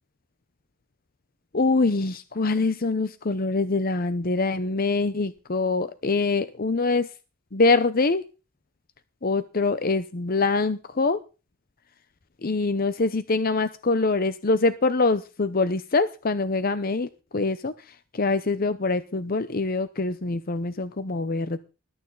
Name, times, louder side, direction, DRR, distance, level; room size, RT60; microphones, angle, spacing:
voice 1, 1.5-7.1 7.5-8.2 9.2-11.2 12.4-17.1 17.3-17.7 18.1-21.6, left 3 dB, 45° left, 12 dB, 0.7 m, -24 dB
20.5 x 11.5 x 4.0 m, 0.33 s
head